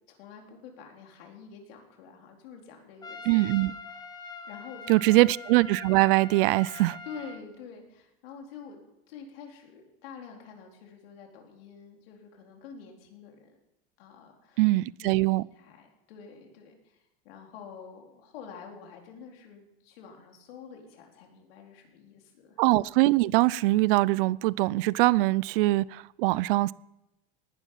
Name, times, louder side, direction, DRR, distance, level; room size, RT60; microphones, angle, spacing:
voice 1, 0.1-4.0 4.4-5.2 7.0-13.6 14.0-14.6 15.0-22.6, left 6 dB, 75° left, 4.2 m, -47 dB
Trumpet, 3.0-7.4, left 4 dB, 15° left, 1.1 m, -43 dB
voice 2, 3.3-3.7 4.9-7.0 14.6-15.4 22.6-26.7, right 20 dB, 65° right, 0.5 m, -22 dB
18.5 x 11.5 x 5.8 m
supercardioid pair, 155°, 29 cm